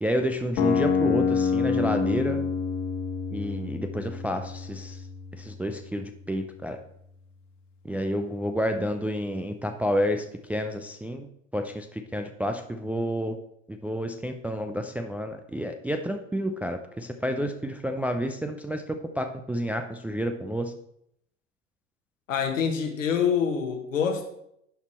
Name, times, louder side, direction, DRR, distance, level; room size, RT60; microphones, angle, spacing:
voice 1, 0.0-2.4 3.3-5.0 5.4-6.8 7.8-11.3 11.5-13.4 13.7-20.7, equal, 5° right, 6 dB, 0.3 m, -30 dB
sound 1, 0.6-6.6, left 6 dB, 45° left, 1.5 m, -28 dB
voice 2, 22.3-24.3, left 7 dB, 80° left, 4 dB, 1.5 m, -26 dB
11.0 x 4.2 x 4.3 m, 0.75 s
figure-of-eight pair, 80°, 39 cm